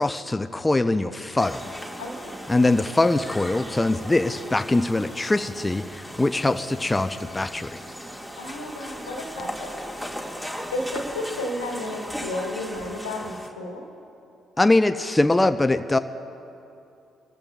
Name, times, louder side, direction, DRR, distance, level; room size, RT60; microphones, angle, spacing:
voice 1, 0.0-1.7 2.5-7.8 14.6-16.0, left 2 dB, 15° left, 10 dB, 0.5 m, -22 dB
sound 1, 1.4-13.5, equal, 5° right, 1.9 m, -37 dB
voice 2, 2.0-2.5 8.4-9.8 10.7-13.8, left 1 dB, 90° left, 0 dB, 1.5 m, -32 dB
25.0 x 14.0 x 2.3 m, 2.7 s
hypercardioid pair, 45°, 0 cm